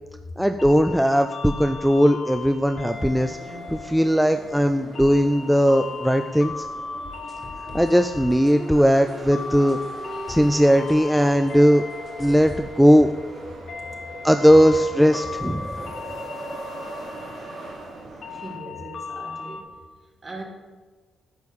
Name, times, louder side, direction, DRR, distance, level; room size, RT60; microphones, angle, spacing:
voice 1, 0.4-3.4 3.7-6.7 7.7-9.8 10.3-11.8 12.2-13.1 14.2-15.7, equal, ahead, 7 dB, 0.3 m, -18 dB
sound 1, 0.6-19.6, left 5 dB, 60° left, 1.1 m, -38 dB
sound 2, 2.9-18.6, right 2 dB, 65° right, 1.6 m, -39 dB
sound 3, 7.0-8.5 9.1-9.2 9.7-10.5 10.9-11.0 11.5-11.6 12.1-12.6, left 3 dB, 40° left, 1.4 m, -41 dB
voice 2, 18.3-19.7 20.2-20.4, right 2 dB, 35° right, 0 dB, 1.9 m, -39 dB
9.5 x 6.2 x 3.6 m, 1.3 s
cardioid pair, 95°, 0 cm